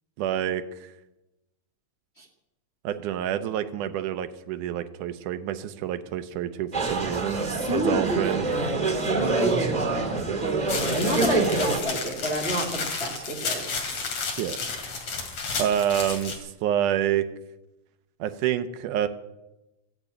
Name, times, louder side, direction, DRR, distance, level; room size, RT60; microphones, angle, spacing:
voice 1, 0.2-0.9 2.8-7.4 7.7-8.4 14.4-14.6 15.6-17.3 18.2-19.1, right 10 dB, 90° right, 10 dB, 2.3 m, -27 dB
sound 1, 6.7-11.8, right 3 dB, 20° right, 1.3 m, -26 dB
voice 2, 7.2-10.0 10.4-13.6, right 1 dB, 30° left, 1 dB, 1.4 m, -29 dB
sound 2, 10.7-16.4, left 4 dB, 55° left, 3.3 m, -32 dB
15.0 x 8.7 x 8.9 m, 0.99 s
omnidirectional pair, 3.5 m